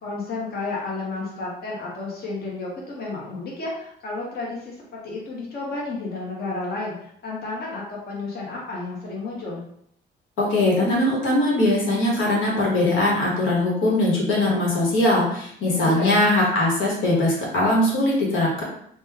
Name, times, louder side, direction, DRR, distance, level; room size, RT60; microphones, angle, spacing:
voice 1, 0.0-4.7 5.0-9.6 15.6-16.3, left 3 dB, 50° left, -4 dB, 1.0 m, -31 dB
voice 2, 10.4-18.6, left 1 dB, 80° left, -3 dB, 1.1 m, -21 dB
2.9 x 2.1 x 3.5 m, 0.69 s
cardioid pair, 90°, 20 cm